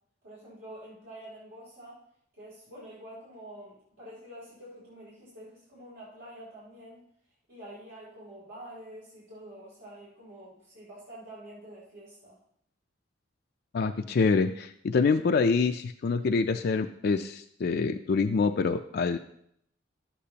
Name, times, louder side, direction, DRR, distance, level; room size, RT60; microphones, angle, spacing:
voice 1, 0.2-2.0 2.4-7.0 7.5-12.4, right 1 dB, 85° right, -8 dB, 3.4 m, -47 dB
voice 2, 13.7-19.2, left 4 dB, 55° left, 6 dB, 0.4 m, -26 dB
12.0 x 8.3 x 2.9 m, 0.70 s
head